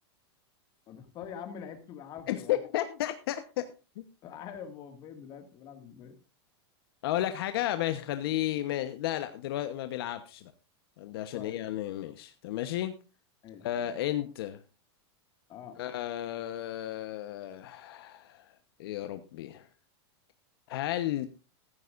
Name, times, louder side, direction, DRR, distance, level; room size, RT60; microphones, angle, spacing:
voice 1, 0.9-2.6 4.2-6.2 11.3-11.6 13.4-13.9 15.5-15.8, left 8 dB, 30° left, 6 dB, 2.1 m, -45 dB
voice 2, 2.3-3.7 4.0-4.1 7.0-10.5 11.0-12.9 13.6-14.6 15.8-18.5 18.8-19.7 20.7-21.3, left 13 dB, 60° left, 9 dB, 1.1 m, -33 dB
15.0 x 14.5 x 2.6 m, 0.31 s
supercardioid pair, 160°, 14 cm